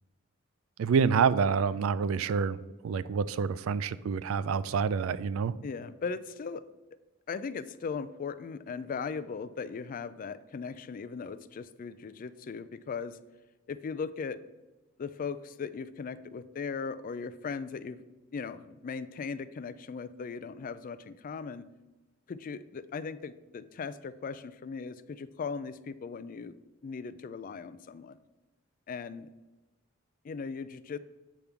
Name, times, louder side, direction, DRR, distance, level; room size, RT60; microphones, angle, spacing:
voice 1, 0.8-5.5, right 6 dB, 80° right, 17 dB, 0.3 m, -27 dB
voice 2, 5.6-6.6 7.3-13.2 13.7-14.4 15.0-18.0 18.3-21.7 22.3-26.5 26.8-28.2 28.9-29.3 30.2-31.0, left 5 dB, 40° left, 15 dB, 0.3 m, -38 dB
8.2 x 3.6 x 5.8 m, 1.1 s
head